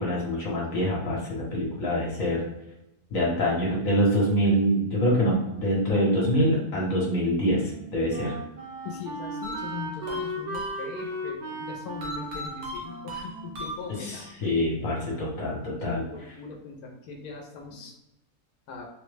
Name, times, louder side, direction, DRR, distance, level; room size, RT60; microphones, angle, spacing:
voice 1, 0.0-2.5 3.1-8.4 13.9-16.0, equal, 65° left, -4 dB, 1.2 m, -25 dB
Wind instrument woodwind instrument, 7.1-14.4, right 1 dB, 90° right, 1.3 m, -37 dB
voice 2, 8.8-14.3 15.9-17.9 18.7-18.9, left 5 dB, 85° left, 1 dB, 1.1 m, -40 dB
sound 1, 9.4-11.2 12.0-14.3, equal, 60° right, 1.1 m, -38 dB
3.5 x 2.1 x 3.2 m, 0.90 s
omnidirectional pair, 1.6 m